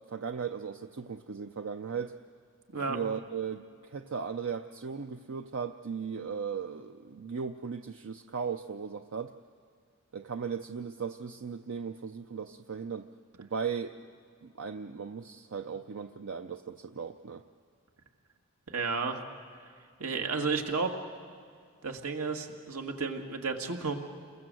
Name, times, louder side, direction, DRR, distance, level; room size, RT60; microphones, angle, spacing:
voice 1, 0.1-2.2 2.9-9.3 10.1-13.1 13.4-14.0 14.4-17.4, right 6 dB, 60° right, 7 dB, 0.6 m, -37 dB
voice 2, 18.7-19.2 20.0-20.9 21.8-23.9, right 4 dB, 90° right, 3 dB, 2.0 m, -32 dB
29.0 x 22.0 x 7.7 m, 2.1 s
head